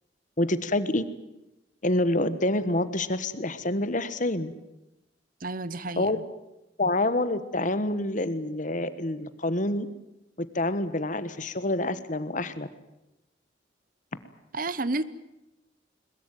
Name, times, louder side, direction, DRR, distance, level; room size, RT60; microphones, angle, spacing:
voice 1, 0.4-1.0 1.8-4.5 6.0-6.2 6.8-9.9 10.4-12.7, left 1 dB, 40° left, 13 dB, 1.4 m, -27 dB
voice 2, 5.4-6.2 14.5-15.0, right 2 dB, 45° right, 16 dB, 0.9 m, -31 dB
21.5 x 21.5 x 9.1 m, 0.95 s
head